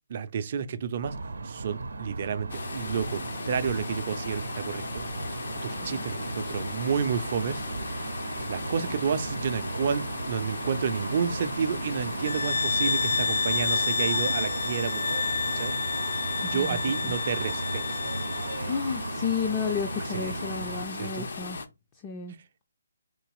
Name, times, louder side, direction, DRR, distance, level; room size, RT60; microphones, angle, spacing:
voice 1, 0.1-1.2 1.4-5.0 5.6-7.6 8.1-8.2 8.5-15.2 15.5-15.8 16.5-17.8 20.1-20.3 21.0-21.3, right 7 dB, 40° right, 0.5 m, -30 dB
sound 1, 1.0-20.8, right 3 dB, 90° right, 0.6 m, -36 dB
sound 2, 2.5-21.7, left 4 dB, 65° left, 0.8 m, -37 dB
sound 3, 12.2-18.6, left 5 dB, 90° left, 0.4 m, -29 dB
voice 2, 16.4-17.2 18.6-21.6 21.9-22.4, left 6 dB, 20° left, 0.5 m, -32 dB
3.9 x 2.9 x 4.8 m
hypercardioid pair, 165°, 0 cm